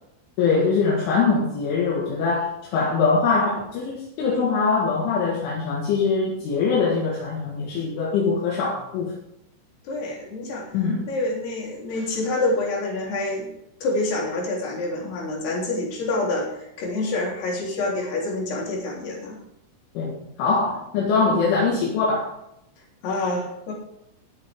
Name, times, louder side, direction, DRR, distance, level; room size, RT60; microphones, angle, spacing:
voice 1, 0.4-9.2 10.7-11.1 20.0-20.1 20.4-22.4, left 4 dB, 70° left, -4 dB, 4.3 m, -22 dB
voice 2, 9.9-10.7 11.1-13.5 13.8-19.4 23.0-23.7, left 2 dB, 55° left, -3 dB, 5.3 m, -27 dB
19.5 x 8.0 x 3.7 m, 0.81 s
omnidirectional pair, 5.8 m